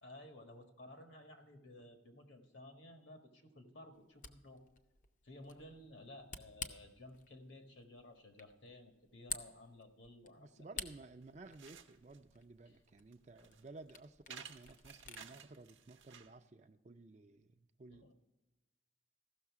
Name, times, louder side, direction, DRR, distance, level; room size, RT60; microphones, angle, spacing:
voice 1, 0.0-4.6 5.2-10.8 12.6-12.8 17.9-18.1, left 1 dB, 70° left, 4 dB, 1.6 m, -55 dB
Camera, 3.9-15.3, left 5 dB, 40° left, 0.6 m, -52 dB
voice 2, 10.3-18.1, right 3 dB, 35° right, 9 dB, 0.4 m, -55 dB
sound 1, 11.2-16.4, right 7 dB, 70° right, 0.8 m, -56 dB
15.0 x 6.4 x 4.8 m, 1.1 s
head